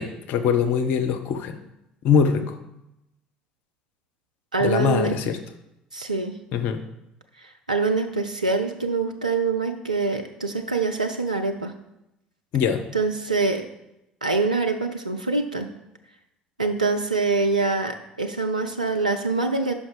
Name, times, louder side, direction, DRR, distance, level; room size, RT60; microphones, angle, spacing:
voice 1, 0.0-1.6 2.0-2.6 4.6-5.4 6.5-6.8 12.5-12.8, left 7 dB, 55° left, 7 dB, 0.6 m, -22 dB
voice 2, 4.5-5.2 5.9-6.4 7.7-11.7 12.9-13.6 14.2-15.7 16.6-19.7, right 3 dB, 90° right, 4 dB, 0.3 m, -24 dB
5.7 x 5.1 x 4.9 m, 0.87 s
figure-of-eight pair, 60°, 4 cm